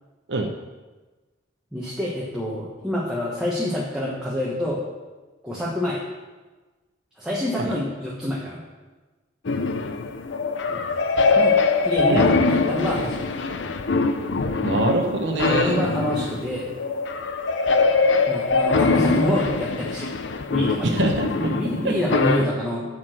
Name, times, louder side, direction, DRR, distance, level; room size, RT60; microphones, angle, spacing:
voice 1, 1.7-4.8 5.4-6.0 7.2-8.6 10.7-10.9 11.4-11.5 11.8-13.3 15.3-16.7 18.3-20.1 20.5-20.9 21.4-22.9, equal, 5° right, -6 dB, 1.2 m, -27 dB
sound 1, 9.4-22.4, left 4 dB, 80° left, 0.6 m, -23 dB
voice 2, 14.6-15.8 20.8-21.3 21.8-21.9, right 2 dB, 75° right, 2 dB, 0.8 m, -24 dB
7.5 x 6.1 x 7.7 m, 1.3 s
head